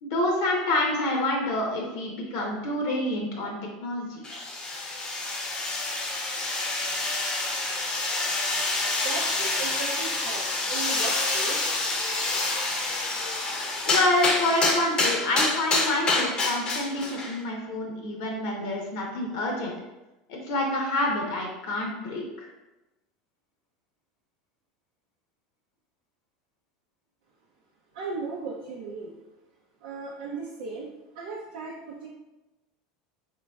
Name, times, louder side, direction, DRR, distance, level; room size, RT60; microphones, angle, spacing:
voice 1, 0.0-4.2 13.8-19.7 20.3-22.5, left 1 dB, 70° left, 0 dB, 0.8 m, -27 dB
sound 1, 4.2-17.4, left 2 dB, 25° left, 0.7 m, -27 dB
voice 2, 9.0-11.6 27.9-29.1 29.8-30.9 31.1-32.1, right 4 dB, 75° right, -4 dB, 0.6 m, -36 dB
3.8 x 3.3 x 2.3 m, 1.0 s
supercardioid pair, 120°, 3 cm